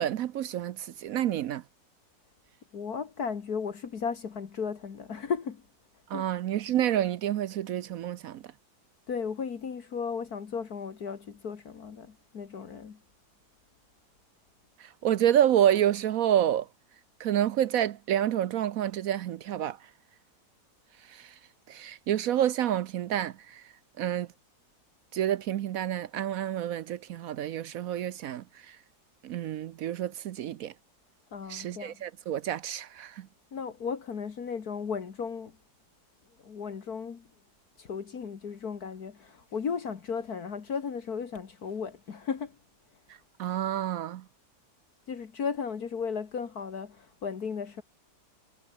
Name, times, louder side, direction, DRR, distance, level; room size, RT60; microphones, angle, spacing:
voice 1, 0.0-1.6 6.1-8.4 14.8-16.7 17.2-19.8 21.1-21.3 21.7-23.6 24.0-24.3 25.1-28.8 29.2-30.7 31.5-33.3 43.4-44.2, right 11 dB, 70° right, 1.0 m, -28 dB
voice 2, 2.7-5.6 6.1-6.3 9.1-13.0 31.3-32.0 33.5-35.6 36.4-37.3 37.8-42.6 45.1-47.8, left 6 dB, 65° left, 2.2 m, -35 dB
omnidirectional pair, 1.7 m